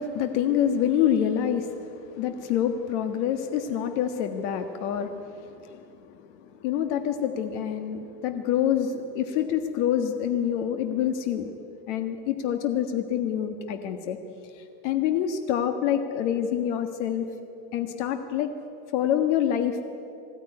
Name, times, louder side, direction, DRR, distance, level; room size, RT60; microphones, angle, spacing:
voice 1, 0.0-11.5 11.9-14.2 14.5-17.3 17.7-18.5 18.9-19.8, left 9 dB, 80° left, 7 dB, 1.6 m, -27 dB
21.5 x 16.0 x 9.8 m, 2.6 s
supercardioid pair, 145°, 34 cm